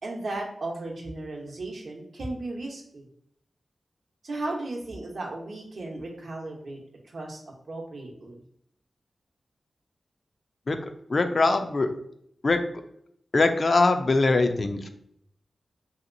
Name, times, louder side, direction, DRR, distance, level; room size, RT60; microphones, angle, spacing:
voice 1, 0.0-3.0 4.2-8.4, right 2 dB, 65° right, 0 dB, 0.7 m, -35 dB
voice 2, 11.1-11.9 12.4-12.6 13.3-14.9, left 3 dB, 45° left, 7 dB, 0.3 m, -22 dB
2.9 x 2.8 x 2.5 m, 0.71 s
wide cardioid pair, 100°, 0 cm